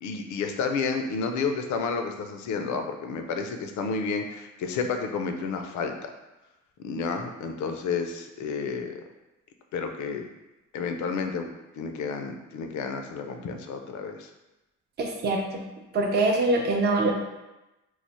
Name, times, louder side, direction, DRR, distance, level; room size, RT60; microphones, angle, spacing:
voice 1, 0.0-6.1 6.8-9.0 9.7-10.3 10.7-14.3, left 5 dB, 70° left, 5 dB, 0.5 m, -31 dB
voice 2, 15.0-15.6 15.9-17.1, right 2 dB, 35° right, 0 dB, 0.5 m, -24 dB
3.1 x 2.0 x 4.1 m, 1.0 s
cardioid pair, 90°, 30 cm